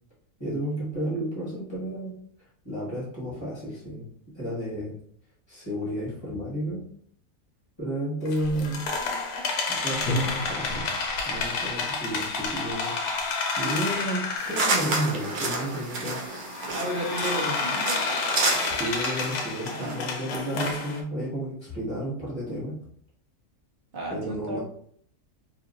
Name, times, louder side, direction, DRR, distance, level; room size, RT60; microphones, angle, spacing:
voice 1, 0.4-2.2 2.6-4.1 4.3-4.9 5.5-6.8 7.8-8.9 9.7-10.9 11.2-13.0 13.5-16.2 18.6-22.8 24.1-24.6, right 1 dB, 20° left, -8 dB, 1.4 m, -32 dB
sound 1, 8.3-15.0 15.4-15.5 16.3-21.0, left 3 dB, 80° left, 1.1 m, -30 dB
sound 2, 14.4-20.1, right 2 dB, 65° right, 0.5 m, -30 dB
voice 2, 16.7-18.0 19.7-20.0 23.9-24.6, right 1 dB, 45° right, -1 dB, 0.8 m, -32 dB
3.0 x 2.7 x 2.5 m, 0.63 s
omnidirectional pair, 1.6 m